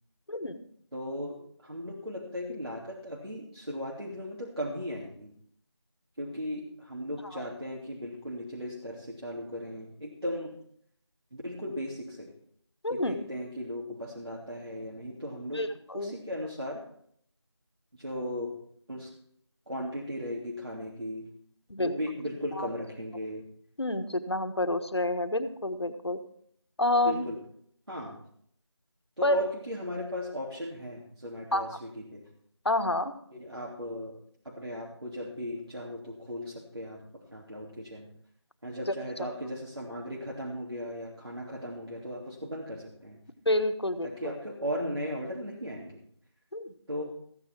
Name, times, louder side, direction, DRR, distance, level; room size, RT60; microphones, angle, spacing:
voice 1, 0.3-0.6 7.3-7.4 12.8-13.2 15.5-16.1 21.7-21.9 22.6-22.7 23.8-26.2 26.8-27.3 29.2-29.4 31.5-31.6 32.6-33.1 38.9-39.0 43.4-44.3 46.5-46.7, left 2 dB, 65° left, 9 dB, 1.4 m, -28 dB
voice 2, 0.9-5.3 6.2-10.5 11.3-12.3 12.9-15.6 15.9-16.8 17.9-18.5 18.9-19.1 19.7-21.2 21.8-23.4 27.0-27.4 27.9-28.2 29.2-32.2 33.3-34.1 34.4-37.0 37.3-38.1 38.6-43.2 44.0-46.0 46.9-47.0, equal, 60° right, -3 dB, 3.1 m, -37 dB
15.0 x 9.8 x 4.6 m, 0.65 s
figure-of-eight pair, 175°, 15 cm